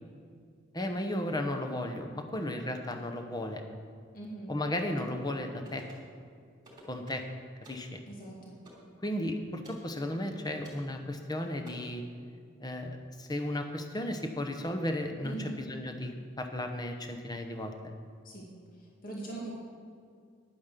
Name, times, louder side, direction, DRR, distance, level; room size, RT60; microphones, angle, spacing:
voice 1, 0.7-3.6 4.5-5.9 6.9-7.2 7.7-8.0 9.0-12.1 12.6-17.9, left 1 dB, 20° left, 5 dB, 0.9 m, -34 dB
voice 2, 4.1-4.5 8.1-8.6 15.2-15.6 18.2-18.5 19.0-19.6, right 2 dB, 45° left, -3 dB, 2.3 m, -41 dB
sound 1, 5.6-6.1 6.6-7.3 7.6-7.9 8.6-8.9 9.6-9.9 10.6-10.9 11.6-11.7, right 1 dB, 20° right, 3.0 m, -52 dB
10.5 x 9.4 x 6.7 m, 2.2 s
head